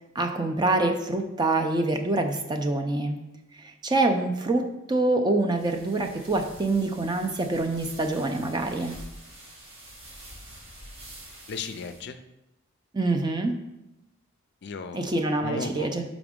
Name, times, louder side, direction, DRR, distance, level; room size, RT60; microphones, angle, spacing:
voice 1, 0.2-3.2 3.6-8.9 12.9-13.6 14.9-16.0, right 2 dB, 20° right, 4 dB, 0.4 m, -25 dB
sound 1, 5.5-12.0, right 1 dB, 70° right, 2.1 m, -47 dB
voice 2, 11.5-12.2 14.6-15.9, left 4 dB, 50° left, 9 dB, 0.4 m, -36 dB
5.9 x 5.0 x 3.6 m, 0.93 s
head